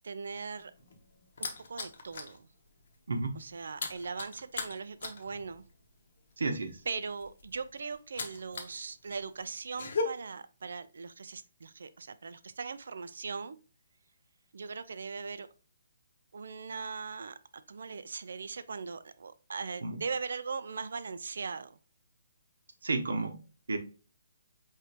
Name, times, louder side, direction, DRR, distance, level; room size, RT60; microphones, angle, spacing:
voice 1, 0.0-0.7 1.4-2.5 3.4-5.6 6.9-13.6 14.5-15.5 16.3-17.4 17.7-21.8, right 5 dB, 60° right, 13 dB, 0.4 m, -39 dB
sound 1, 0.6-2.4 2.7-3.0 3.2-8.8 9.1-10.0, left 4 dB, 45° left, 0.9 m, -39 dB
voice 2, 6.4-6.8 19.8-20.0 22.8-23.4 23.7-23.8, right 3 dB, 90° right, 5 dB, 1.0 m, -31 dB
5.0 x 3.2 x 2.8 m, 0.35 s
hypercardioid pair, 180°, 0 cm